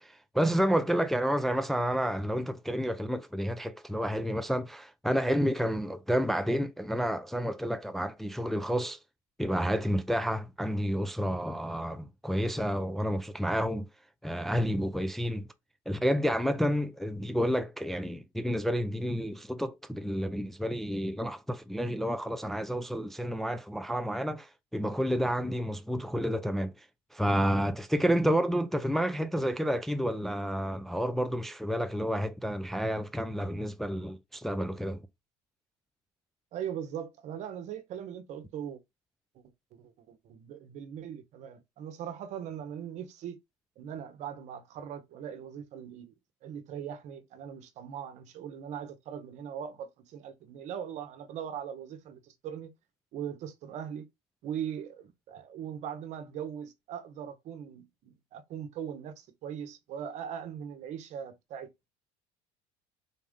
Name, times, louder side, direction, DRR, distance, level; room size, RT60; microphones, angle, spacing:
voice 1, 0.0-9.0 9.4-13.9 14.2-15.5 15.9-26.9 27.1-35.0, equal, ahead, 0.4 m, -30 dB
voice 2, 36.5-38.8 39.3-39.4 39.7-43.4 43.8-46.1 46.4-52.7 53.1-54.1 54.4-61.7, right 9 dB, 55° right, 0.9 m, -40 dB
4.1 x 2.5 x 3.6 m
supercardioid pair, 110°, 14 cm